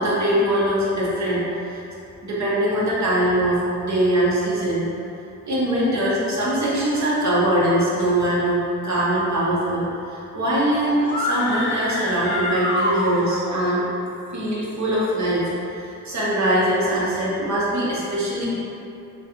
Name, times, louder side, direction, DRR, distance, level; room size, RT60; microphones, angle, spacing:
voice 1, 0.0-1.8 2.2-4.8 5.4-13.8 14.3-18.5, right 1 dB, 60° right, -7 dB, 1.1 m, -22 dB
sound 1, 11.0-13.6, left 1 dB, 35° left, 0.8 m, -26 dB
3.6 x 3.1 x 3.0 m, 2.8 s
cardioid pair, 85°, 32 cm